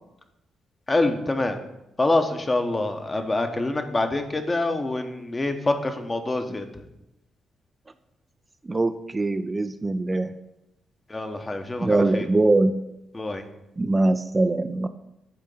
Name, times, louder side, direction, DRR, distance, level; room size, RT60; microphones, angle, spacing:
voice 1, 0.9-1.6 2.0-6.6 11.1-12.2 13.1-13.4, left 2 dB, 30° left, 6 dB, 1.0 m, -25 dB
voice 2, 8.6-10.4 11.8-12.8 13.8-14.9, right 2 dB, 30° right, 9 dB, 0.4 m, -22 dB
8.6 x 3.7 x 5.4 m, 0.90 s
hypercardioid pair, 50°, 0 cm